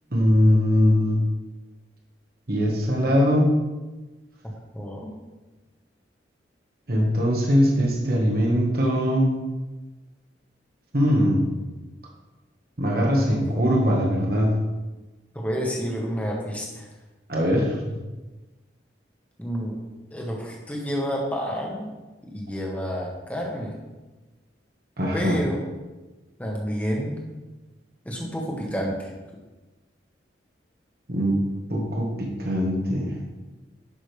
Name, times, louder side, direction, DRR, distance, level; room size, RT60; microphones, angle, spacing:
voice 1, 0.1-1.2 2.5-3.5 6.9-9.3 10.9-11.5 12.8-14.5 17.3-17.9 25.0-25.4 31.1-31.3 31.7-33.1, equal, 55° right, -1 dB, 1.5 m, -21 dB
voice 2, 4.7-5.1 13.2-13.6 15.3-16.9 19.4-19.8 20.1-21.9 22.3-23.7 25.1-25.6 26.4-27.1 28.0-29.1, equal, 10° left, -1 dB, 1.4 m, -29 dB
10.5 x 6.3 x 3.4 m, 1.2 s
head